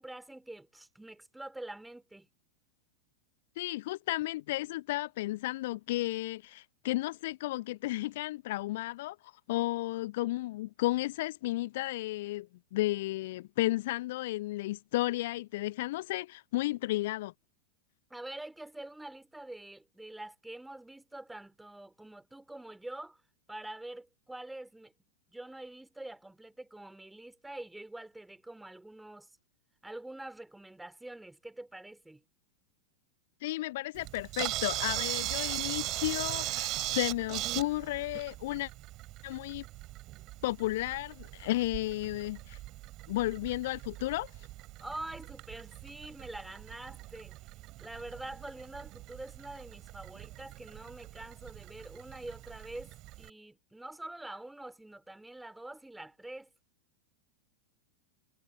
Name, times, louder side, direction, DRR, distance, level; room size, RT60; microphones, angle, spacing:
voice 1, 0.0-2.3 18.1-23.2 23.5-24.9 25.3-29.3 29.8-32.2 44.8-47.4 47.8-56.5, right 1 dB, 5° right, 3.4 m, -45 dB
voice 2, 3.6-17.3 33.4-38.7 39.2-39.6 40.4-42.6 43.1-44.5, left 17 dB, 55° left, 0.5 m, -33 dB
Camera, 34.0-53.3, right 18 dB, 40° right, 3.6 m, -40 dB
figure-of-eight pair, 90°, 0 cm